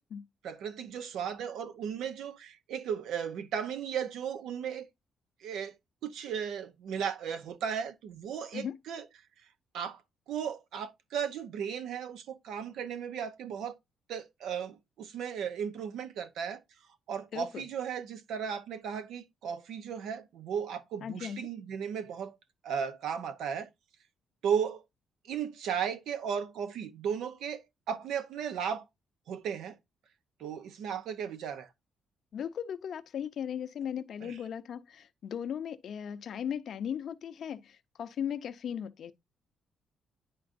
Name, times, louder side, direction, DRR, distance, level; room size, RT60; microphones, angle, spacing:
voice 1, 0.4-4.8 5.4-5.7 6.0-9.0 9.7-10.0 10.3-13.7 14.1-16.6 17.1-22.3 22.6-23.7 24.4-24.8 25.3-28.9 29.3-29.8 30.4-31.7 34.2-34.3, right 7 dB, 80° right, 0.8 m, -35 dB
voice 2, 17.3-17.7 21.0-21.4 32.3-39.1, left 8 dB, 65° left, 0.6 m, -37 dB
10.5 x 3.8 x 2.6 m
cardioid pair, 90°, 0 cm